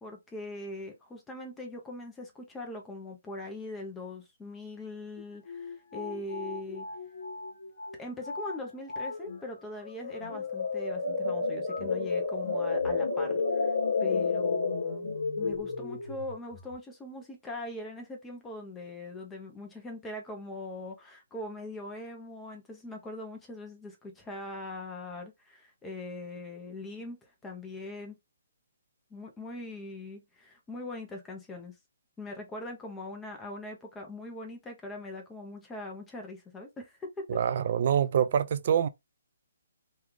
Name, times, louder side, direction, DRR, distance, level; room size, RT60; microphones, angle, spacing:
voice 1, 0.0-6.9 8.0-13.7 14.0-28.2 29.1-31.7 32.2-37.3, left 2 dB, 10° left, 0.6 m, -41 dB
sound 1, 5.2-5.3 5.5-8.0 8.3-8.6 8.9-9.4 9.8-16.7, left 4 dB, 75° left, 1.1 m, -32 dB
voice 2, 37.3-38.9, right 8 dB, 45° right, 0.3 m, -25 dB
3.1 x 2.3 x 3.5 m
hypercardioid pair, 160°, 0 cm